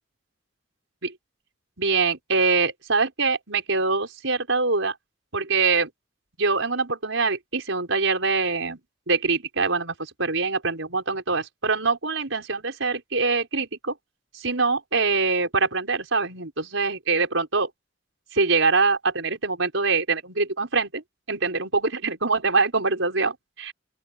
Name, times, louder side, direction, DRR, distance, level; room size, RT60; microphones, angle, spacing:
voice 1, 1.8-4.9 5.3-5.9 6.4-8.8 9.1-13.9 14.3-17.7 18.3-21.0 21.3-23.7, right 4 dB, 90° right, 5.0 m, -24 dB
open air
head